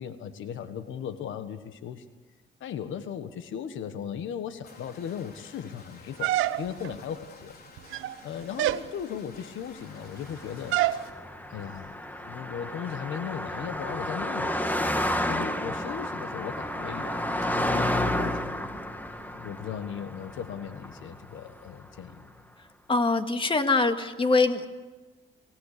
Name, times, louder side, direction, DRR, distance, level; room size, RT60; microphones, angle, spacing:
voice 1, 0.0-2.0 2.6-7.6 8.2-10.8 11.5-14.8 15.3-17.2 17.6-18.7 19.3-22.2, left 8 dB, 80° left, 10 dB, 1.5 m, -37 dB
sound 1, 4.6-11.1, left 4 dB, 50° left, 4.3 m, -51 dB
sound 2, 6.2-7.0 7.8-8.2 8.6-8.9 10.7-11.0, right 14 dB, 90° right, 0.9 m, -26 dB
Car passing by, 10.2-21.7, left 1 dB, 10° left, 2.0 m, -31 dB
voice 2, 22.9-24.7, left 3 dB, 25° left, 7 dB, 2.1 m, -23 dB
27.0 x 18.0 x 6.8 m, 1.3 s
cardioid pair, 90°, 20 cm